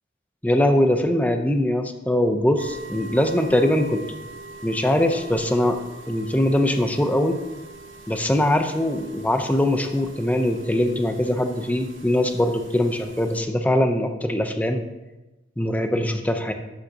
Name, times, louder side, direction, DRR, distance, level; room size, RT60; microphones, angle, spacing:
voice 1, 0.4-4.0 4.6-5.8 6.1-7.4 8.1-14.8 15.6-16.5, left 1 dB, 10° left, 6 dB, 0.7 m, -22 dB
sound 1, 2.6-13.4, right 2 dB, 75° right, 1.3 m, -43 dB
12.5 x 8.1 x 2.9 m, 1.0 s
head